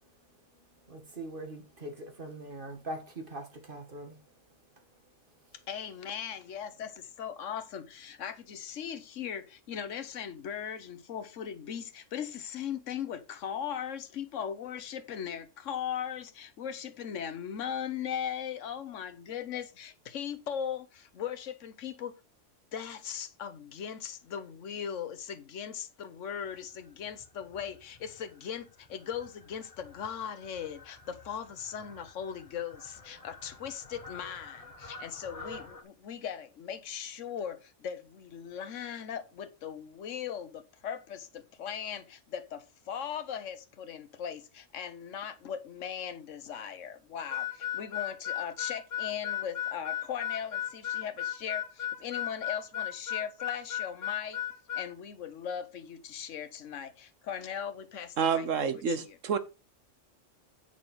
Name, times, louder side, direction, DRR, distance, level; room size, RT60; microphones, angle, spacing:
voice 1, 0.9-4.2, right 1 dB, 45° right, 2.1 m, -42 dB
voice 2, 5.7-22.1 22.7-54.4 54.7-59.0, left 8 dB, 75° left, 1.3 m, -39 dB
Fowl, 26.4-35.8, left 2 dB, 30° left, 1.1 m, -51 dB
Harmonica, 47.3-54.9, left 11 dB, 55° left, 1.5 m, -35 dB
voice 3, 58.2-59.4, right 6 dB, 85° right, 1.4 m, -28 dB
7.8 x 6.2 x 5.5 m
omnidirectional pair, 1.3 m